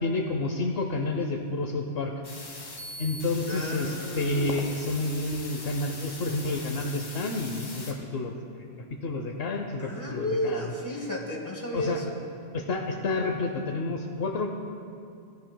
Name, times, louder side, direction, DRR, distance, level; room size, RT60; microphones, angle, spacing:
voice 1, 0.0-2.1 3.0-8.7 9.0-10.7 11.7-12.0 12.5-14.5, left 2 dB, 65° left, 2 dB, 0.9 m, -30 dB
sound 1, 2.2-7.9, left 2 dB, 85° left, 1.9 m, -41 dB
voice 2, 3.5-4.6 9.8-12.2, equal, 15° left, -1 dB, 1.4 m, -33 dB
16.5 x 10.5 x 2.2 m, 2.4 s
omnidirectional pair, 1.1 m